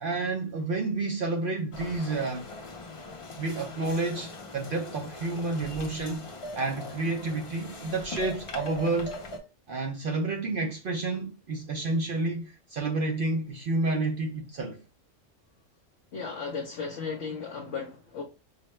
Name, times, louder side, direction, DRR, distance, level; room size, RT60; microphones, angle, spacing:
voice 1, 0.0-2.5 3.4-6.2 6.6-9.1 9.7-14.8, right 3 dB, 60° right, 0.6 m, -30 dB
sound 1, 1.7-9.4, left 2 dB, 40° left, 0.4 m, -41 dB
voice 2, 16.1-18.2, left 5 dB, 65° left, 0.9 m, -35 dB
4.8 x 2.2 x 3.0 m
omnidirectional pair, 1.3 m